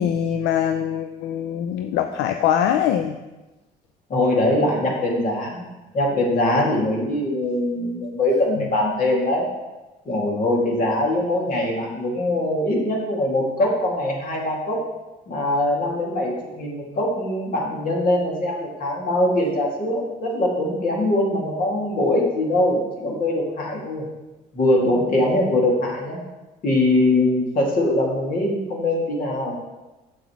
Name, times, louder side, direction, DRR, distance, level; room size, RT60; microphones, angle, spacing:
voice 1, 0.0-3.1, left 9 dB, 80° left, 7 dB, 0.4 m, -22 dB
voice 2, 4.1-5.7 5.9-9.5 10.1-14.8 15.3-24.0 24.5-26.2 26.6-29.5, left 1 dB, 55° left, -2 dB, 2.5 m, -22 dB
7.6 x 7.1 x 3.2 m, 1.1 s
supercardioid pair, 85°, 17 cm